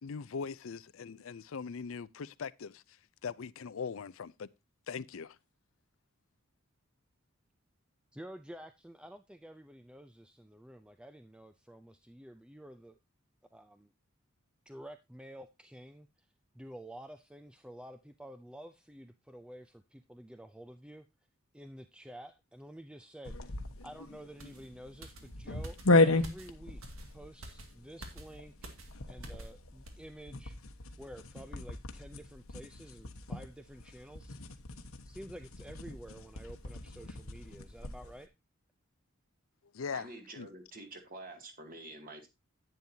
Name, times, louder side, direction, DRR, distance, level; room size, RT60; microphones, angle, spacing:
voice 1, 0.0-2.8 3.2-4.5 4.9-5.4 39.7-40.1 40.4-40.5, left 5 dB, 70° left, 0.5 m, -40 dB
voice 2, 8.1-12.9 13.5-13.9 14.7-16.1 16.6-21.0 21.5-23.4 23.8-25.8 26.0-26.8 27.1-28.5 29.1-30.6 31.0-34.4 35.1-38.3, right 1 dB, 5° right, 0.4 m, -50 dB
sound 1, 23.2-38.2, left 2 dB, 85° left, 1.2 m, -35 dB
Toro Corriendo, 24.4-29.6 29.9-30.1, right 1 dB, 75° right, 2.1 m, -50 dB
voice 3, 39.9-42.3, right 2 dB, 40° right, 2.2 m, -48 dB
10.5 x 9.2 x 2.7 m
head